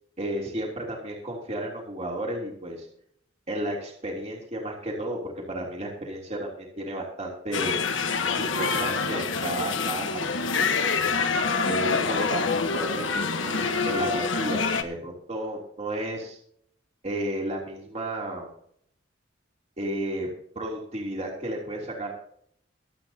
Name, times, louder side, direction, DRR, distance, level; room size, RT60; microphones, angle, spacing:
voice 1, 0.2-2.9 3.5-7.8 8.4-10.1 10.5-10.7 11.6-16.4 17.0-18.5 19.8-20.3 20.5-22.1, right 1 dB, 35° right, -1 dB, 3.2 m, -33 dB
sound 1, 7.5-14.8, left 4 dB, 85° left, 1.3 m, -26 dB
24.5 x 8.9 x 2.9 m, 0.65 s
head